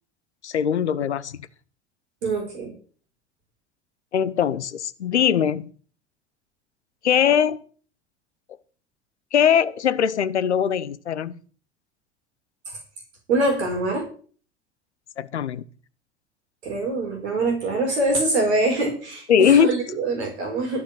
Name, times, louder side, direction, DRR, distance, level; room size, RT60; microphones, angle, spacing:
voice 1, 0.4-1.4 4.1-5.7 7.0-7.6 9.3-11.4 15.2-15.6 19.3-19.7, left 8 dB, 80° left, 0.9 m, -21 dB
voice 2, 2.2-2.7 13.3-14.0 16.6-20.8, right 2 dB, 75° right, 4.6 m, -24 dB
14.0 x 5.3 x 9.0 m
figure-of-eight pair, 70°, 34 cm